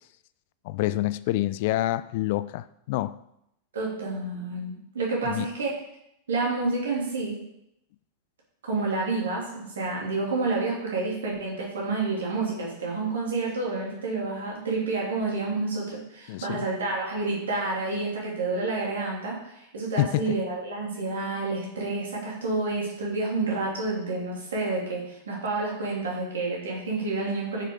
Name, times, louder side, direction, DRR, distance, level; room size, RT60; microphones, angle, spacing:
voice 1, 0.6-3.2 5.2-5.5 16.3-16.7 20.0-20.3, left 16 dB, 50° left, 0.3 m, -27 dB
voice 2, 3.7-5.7 6.3-7.4 8.6-27.6, right 3 dB, 65° right, 2.9 m, -29 dB
9.6 x 6.3 x 3.9 m
figure-of-eight pair, 90°, 0 cm